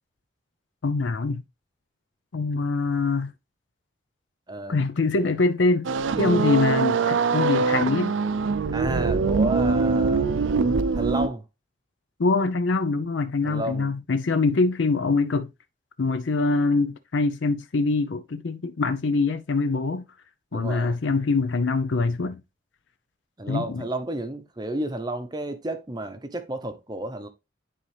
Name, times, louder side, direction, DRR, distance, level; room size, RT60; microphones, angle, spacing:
voice 1, 0.8-1.4 2.3-3.3 4.7-5.9 6.2-8.2 12.2-15.5 16.0-20.1 20.5-22.4 23.5-23.8, left 3 dB, 75° left, 0.6 m, -24 dB
voice 2, 4.5-4.8 6.1-6.5 8.7-10.3 10.9-11.4 13.4-13.9 20.5-21.0 23.4-27.3, right 1 dB, 20° right, 0.7 m, -32 dB
sound 1, 5.8-11.3, right 4 dB, 85° right, 0.5 m, -23 dB
10.0 x 4.1 x 3.3 m
head